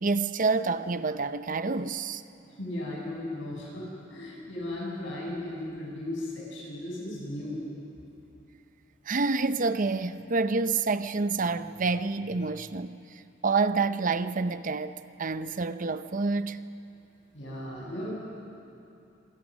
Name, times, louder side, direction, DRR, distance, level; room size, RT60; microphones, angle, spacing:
voice 1, 0.0-2.2 9.1-13.0 13.4-16.6, right 4 dB, 45° right, 0.7 m, -28 dB
voice 2, 2.6-7.6 17.3-18.1, left 1 dB, 70° left, 7.5 m, -36 dB
28.0 x 21.5 x 6.4 m
head